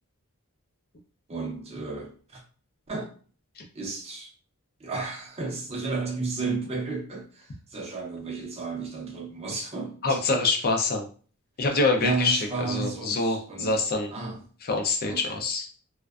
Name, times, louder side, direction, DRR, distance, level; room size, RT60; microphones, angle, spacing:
voice 1, 1.3-2.4 2.9-3.1 3.7-4.3 4.8-10.4 12.0-13.7 14.1-14.4 15.1-15.2, right 4 dB, 30° right, 0.6 m, -33 dB
voice 2, 10.0-11.0 11.6-14.1 14.6-15.7, left 3 dB, 45° left, 0.5 m, -25 dB
2.5 x 2.1 x 2.3 m
head